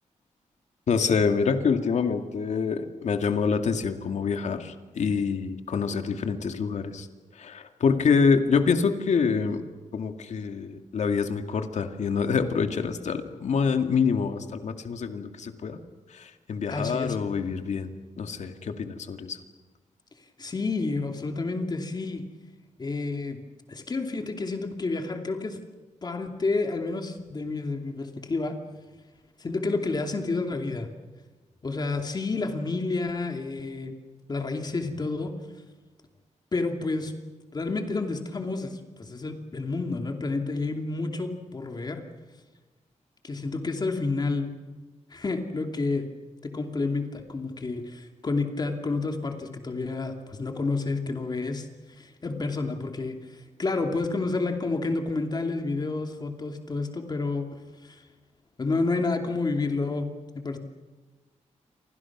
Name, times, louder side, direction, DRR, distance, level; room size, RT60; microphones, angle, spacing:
voice 1, 0.9-7.1 7.3-9.6 9.9-15.8 16.1-17.9 18.2-19.4, left 5 dB, 65° left, 6 dB, 2.3 m, -26 dB
voice 2, 16.7-17.2 20.4-22.2 22.8-23.4 23.7-25.6 26.0-28.5 29.4-30.9 31.6-33.9 34.3-35.3 36.5-37.1 37.5-42.0 43.2-44.5 45.1-46.1 46.4-51.7 52.0-53.2 53.6-57.5 57.8-58.0 58.6-60.1 60.3-60.6, left 3 dB, 35° left, 4 dB, 2.7 m, -29 dB
29.0 x 25.5 x 6.1 m, 1.3 s
wide cardioid pair, 150°, 13 cm